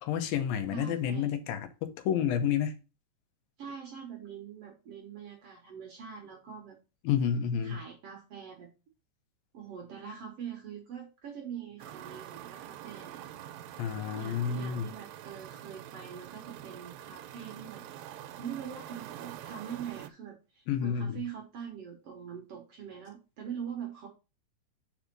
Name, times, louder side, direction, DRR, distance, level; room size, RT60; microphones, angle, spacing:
voice 1, 0.0-2.7 7.0-7.8 13.8-14.9 20.7-21.2, left 8 dB, 80° left, 2.6 m, -30 dB
voice 2, 0.7-1.3 3.6-6.8 7.6-8.7 9.5-13.2 14.1-17.9 18.4-24.1, right 8 dB, 65° right, 1.6 m, -43 dB
sound 1, 11.8-20.1, right 12 dB, 90° right, 2.4 m, -45 dB
5.2 x 4.8 x 6.0 m
omnidirectional pair, 4.0 m